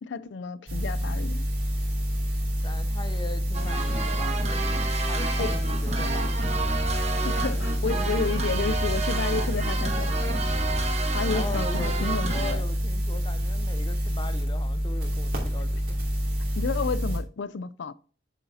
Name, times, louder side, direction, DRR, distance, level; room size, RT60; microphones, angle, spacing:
voice 1, 0.0-1.5 5.4-5.5 7.2-10.4 11.1-12.6 16.6-17.9, left 5 dB, 80° left, 0.5 m, -31 dB
sound 1, 0.7-17.2, equal, 50° right, 2.8 m, -27 dB
voice 2, 2.6-6.4 11.3-16.0, left 2 dB, 25° left, 0.5 m, -40 dB
sound 2, 3.5-12.5, right 3 dB, 35° right, 1.1 m, -31 dB
8.2 x 7.0 x 2.8 m
head